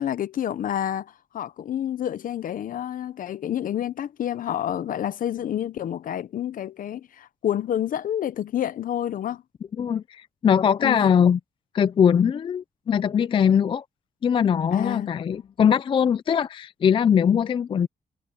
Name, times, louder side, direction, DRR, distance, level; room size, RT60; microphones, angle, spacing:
voice 1, 0.0-9.4 10.8-11.1 14.7-15.1, left 10 dB, 60° left, 0.8 m, -29 dB
voice 2, 9.8-11.4 11.7-13.8 14.2-17.9, left 8 dB, 35° left, 0.4 m, -21 dB
wide cardioid pair, 155°, 16 cm